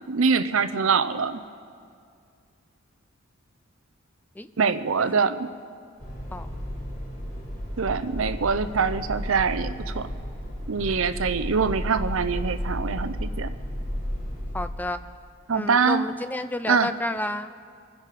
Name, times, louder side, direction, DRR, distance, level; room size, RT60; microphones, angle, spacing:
voice 1, 0.1-1.4 4.6-5.5 7.8-10.1 10.7-13.5 15.5-16.0 16.7-16.9, right 5 dB, 70° right, 12 dB, 0.6 m, -24 dB
sound 1, 6.0-14.7, equal, 35° left, 4.1 m, -33 dB
voice 2, 14.5-15.0 15.5-17.5, left 1 dB, 10° left, 11 dB, 0.3 m, -31 dB
26.0 x 10.5 x 4.1 m, 2.3 s
head